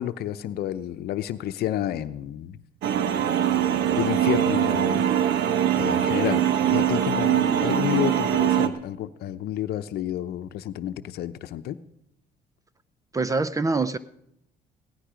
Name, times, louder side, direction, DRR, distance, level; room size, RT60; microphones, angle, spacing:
voice 1, 0.0-2.6 3.7-5.1 5.8-11.8, left 12 dB, 70° left, 11 dB, 0.8 m, -30 dB
sound 1, 2.8-8.7, right 10 dB, 80° right, 1.2 m, -22 dB
voice 2, 13.1-14.0, right 3 dB, 20° right, 15 dB, 0.5 m, -24 dB
17.0 x 13.0 x 5.1 m, 0.76 s
cardioid pair, 110°, 17 cm